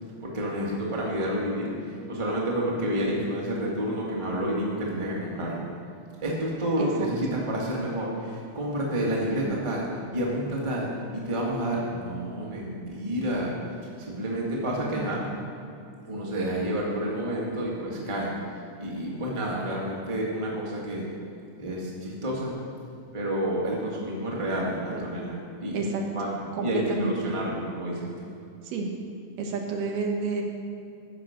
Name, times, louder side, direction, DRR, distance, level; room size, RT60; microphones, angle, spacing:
voice 1, 0.2-5.7 6.2-9.9 10.1-13.5 14.0-15.2 16.1-18.3 18.8-21.1 21.6-22.5 23.1-25.9 26.1-26.3 26.6-28.3, right 1 dB, 20° right, -4 dB, 0.8 m, -29 dB
voice 2, 14.9-15.3 24.9-25.0 25.7-26.0 26.5-27.3 28.6-28.9 29.4-30.4, right 4 dB, 90° right, 1 dB, 2.8 m, -30 dB
14.5 x 5.9 x 5.1 m, 2.5 s
omnidirectional pair, 3.7 m